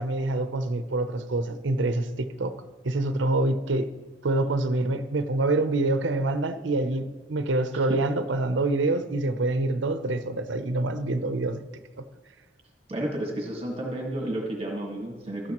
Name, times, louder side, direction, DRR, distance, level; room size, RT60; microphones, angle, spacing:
voice 1, 0.0-2.5 2.8-3.9 4.2-11.6, right 2 dB, 75° right, 0.7 m, -26 dB
voice 2, 12.9-15.5, right 1 dB, 30° right, 1.7 m, -31 dB
15.5 x 12.5 x 3.0 m
head